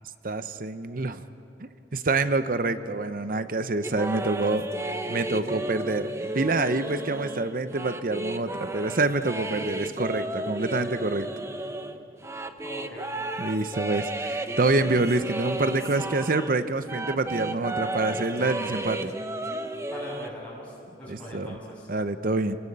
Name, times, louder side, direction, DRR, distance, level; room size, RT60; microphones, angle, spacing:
voice 1, 0.2-1.2 1.6-4.7 5.1-11.3 13.4-19.1 21.1-21.6 21.9-22.6, right 2 dB, 50° right, 11 dB, 0.8 m, -27 dB
sound 1, 3.8-16.6 16.9-20.3, right 2 dB, 15° right, 0.8 m, -33 dB
voice 2, 12.6-13.2 19.9-21.9, equal, 10° left, -6 dB, 8.0 m, -41 dB
28.0 x 19.0 x 8.7 m, 2.8 s
head